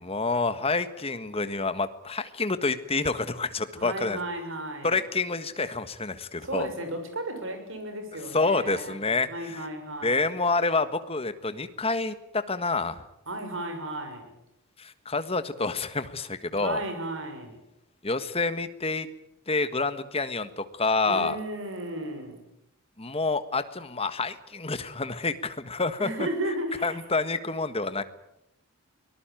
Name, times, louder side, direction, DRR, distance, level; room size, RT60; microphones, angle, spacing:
voice 1, 0.0-4.2 4.8-6.7 8.3-9.7 10.0-13.0 14.8-16.8 18.0-19.1 19.5-21.4 23.0-26.1 26.8-28.0, left 3 dB, 25° left, 11 dB, 1.5 m, -28 dB
voice 2, 3.8-5.0 6.4-9.0 9.3-10.2 13.3-14.3 16.5-17.6 21.1-22.4 26.0-27.0, right 1 dB, 60° right, 6 dB, 6.8 m, -34 dB
24.5 x 19.5 x 9.1 m, 0.82 s
head